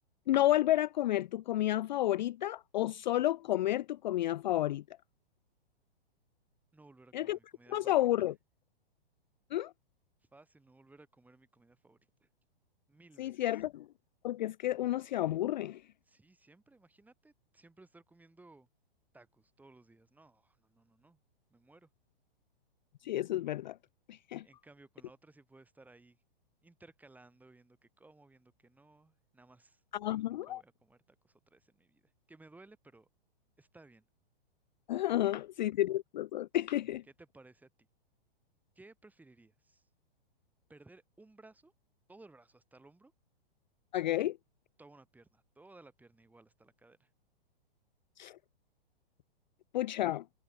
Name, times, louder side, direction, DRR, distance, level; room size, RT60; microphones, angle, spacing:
voice 1, 0.3-4.8 7.1-7.4 7.7-8.3 9.5-9.7 13.2-13.9 14.2-15.8 23.0-23.8 24.1-24.4 29.9-30.6 34.9-37.0 43.9-44.3 48.2-48.4 49.7-50.2, left 14 dB, 50° left, 0.4 m, -31 dB
voice 2, 6.7-8.0 10.3-12.3 12.9-13.4 16.0-18.7 19.1-21.2 21.5-21.9 24.4-26.2 26.6-29.8 30.3-33.1 33.6-34.1 35.1-35.3 36.7-36.9 37.2-37.7 38.7-39.9 40.7-41.7 42.1-43.1 44.0-44.2 44.8-47.1, right 2 dB, 5° right, 3.3 m, -59 dB
figure-of-eight pair, 115°, 30 cm